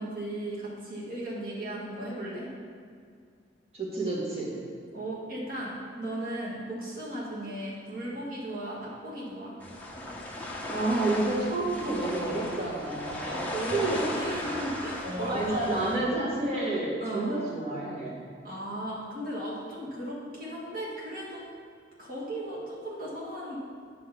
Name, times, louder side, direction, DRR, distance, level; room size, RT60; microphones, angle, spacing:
voice 1, 0.0-2.5 4.9-9.6 13.3-15.8 17.0-17.4 18.4-21.5 22.0-23.6, right 1 dB, 55° right, -6 dB, 1.6 m, -36 dB
voice 2, 3.7-4.5 10.7-13.4 13.7-14.2 15.0-18.2, right 2 dB, 35° right, -6 dB, 1.6 m, -29 dB
sound 1, 9.6-16.0, left 1 dB, 10° left, 0.9 m, -36 dB
9.0 x 4.0 x 6.7 m, 2.2 s
head